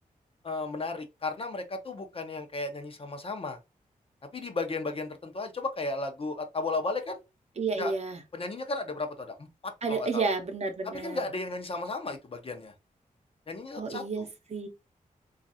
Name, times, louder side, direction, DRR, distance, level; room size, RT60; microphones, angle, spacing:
voice 1, 0.4-3.6 4.3-7.2 7.8-7.9 8.3-10.3 10.9-12.7 13.5-14.3, left 3 dB, 40° left, 0.6 m, -34 dB
voice 2, 7.6-8.2 9.8-11.2 13.8-14.7, right 4 dB, 50° right, 0.7 m, -31 dB
3.1 x 2.4 x 2.7 m
wide cardioid pair, 105°, 14 cm